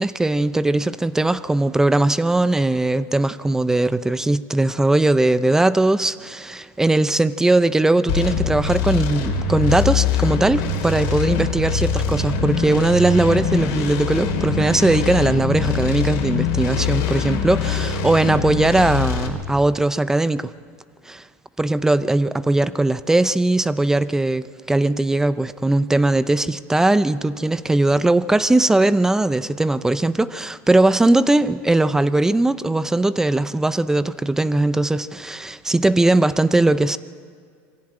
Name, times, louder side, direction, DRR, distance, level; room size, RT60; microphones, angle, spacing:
voice 1, 0.0-20.5 21.1-21.2 21.6-37.0, right 2 dB, 5° right, 14 dB, 0.5 m, -19 dB
sound 1, 8.1-19.3, left 5 dB, 65° left, 3.2 m, -23 dB
23.0 x 15.5 x 8.6 m, 2.2 s
supercardioid pair, 135°, 7 cm